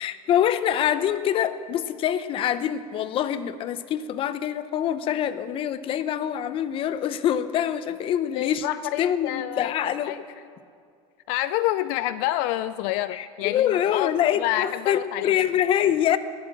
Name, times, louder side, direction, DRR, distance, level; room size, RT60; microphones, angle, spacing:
voice 1, 0.0-8.7 9.0-10.1 13.1-16.2, left 10 dB, 40° left, 13 dB, 0.7 m, -25 dB
voice 2, 8.3-9.7 10.0-10.2 11.3-14.1 14.4-15.3, left 14 dB, 70° left, 14 dB, 0.4 m, -28 dB
19.0 x 8.6 x 7.4 m, 2.2 s
cardioid pair, 140°, 14 cm